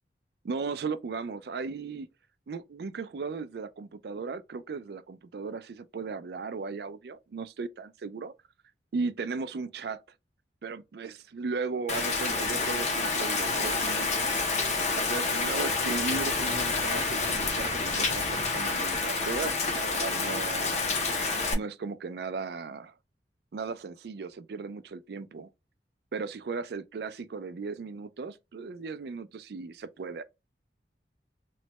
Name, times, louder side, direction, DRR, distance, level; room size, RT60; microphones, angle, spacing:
voice 1, 0.4-2.1 2.5-8.3 8.9-10.0 10.6-14.4 14.9-20.7 21.5-22.9 23.5-25.5 26.1-30.2, right 4 dB, 60° right, 0.4 m, -36 dB
Rain, 11.9-21.5, left 3 dB, 40° left, 0.6 m, -28 dB
3.1 x 2.1 x 2.8 m
head